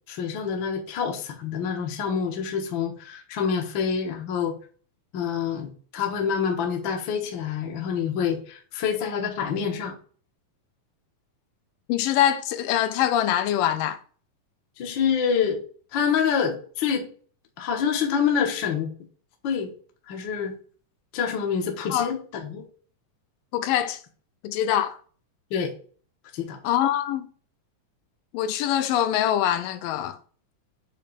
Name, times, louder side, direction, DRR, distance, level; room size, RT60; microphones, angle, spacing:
voice 1, 0.1-4.5 5.1-10.0 14.8-15.6 15.9-17.1 17.6-18.9 19.4-19.7 20.1-20.5 21.1-22.6 25.5-25.7 26.3-26.6, left 7 dB, 65° left, 1.2 m, -26 dB
voice 2, 11.9-14.0 21.9-22.1 23.5-24.0 24.4-25.0 26.6-27.3 28.3-30.2, left 11 dB, 80° left, 2.2 m, -24 dB
8.7 x 3.0 x 5.0 m
omnidirectional pair, 4.1 m